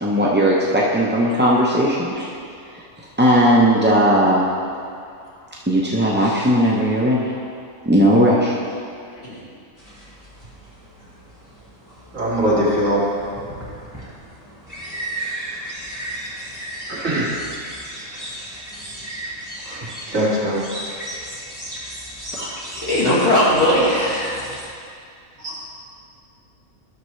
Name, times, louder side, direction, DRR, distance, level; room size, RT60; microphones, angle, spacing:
voice 1, 0.0-2.3 2.7-2.8 3.2-4.4 5.7-7.3 7.8-8.6, equal, 15° right, -5 dB, 0.4 m, -17 dB
sound 1, 9.8-24.7, right 1 dB, 15° left, 1.6 m, -35 dB
voice 2, 12.1-13.0 16.9-17.3 18.1-18.2 19.6-20.6 22.4-22.9 25.4-25.6, equal, 70° right, -7 dB, 2.3 m, -22 dB
voice 3, 22.8-24.4, left 1 dB, 60° left, -8 dB, 2.3 m, -18 dB
12.0 x 6.6 x 3.1 m, 2.3 s
omnidirectional pair, 1.4 m